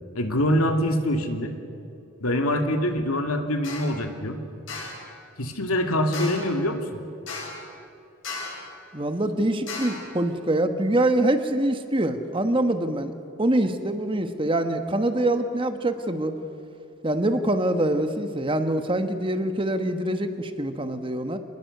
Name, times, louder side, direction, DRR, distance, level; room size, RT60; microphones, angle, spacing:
voice 1, 0.1-1.5 2.2-4.4 5.4-7.0, left 1 dB, 90° left, 5 dB, 2.5 m, -24 dB
sound 1, 3.6-4.0 4.7-5.1 6.1-6.6 7.3-7.7 8.2-8.7 9.7-10.1, left 3 dB, 60° left, 7.6 m, -35 dB
voice 2, 8.9-13.1 13.4-16.3 17.0-21.4, right 1 dB, 25° right, 8 dB, 1.3 m, -24 dB
27.0 x 21.0 x 6.7 m, 2.7 s
head